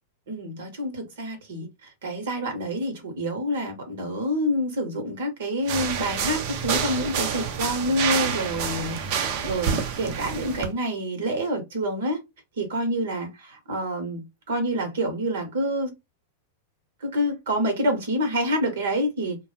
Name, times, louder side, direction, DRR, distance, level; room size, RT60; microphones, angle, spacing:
voice 1, 0.3-12.2 12.6-15.9 17.0-19.4, equal, 65° right, 0.9 m, -27 dB
sound 1, 5.7-10.7, right 7 dB, 50° right, 0.5 m, -28 dB
2.2 x 2.0 x 3.1 m
hypercardioid pair, 95°, 0 cm